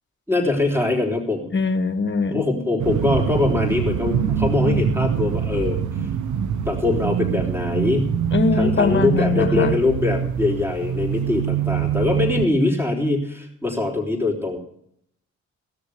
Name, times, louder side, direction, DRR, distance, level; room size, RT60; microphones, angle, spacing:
voice 1, 0.3-1.5 2.3-5.8 6.7-8.1 8.5-14.6, left 2 dB, 10° right, 2 dB, 3.5 m, -22 dB
voice 2, 1.5-2.5 8.3-9.8, left 4 dB, 40° left, 11 dB, 1.3 m, -21 dB
sound 1, 2.8-12.5, right 8 dB, 80° right, 0.8 m, -24 dB
16.5 x 6.8 x 6.6 m, 0.73 s
cardioid pair, 60°, 29 cm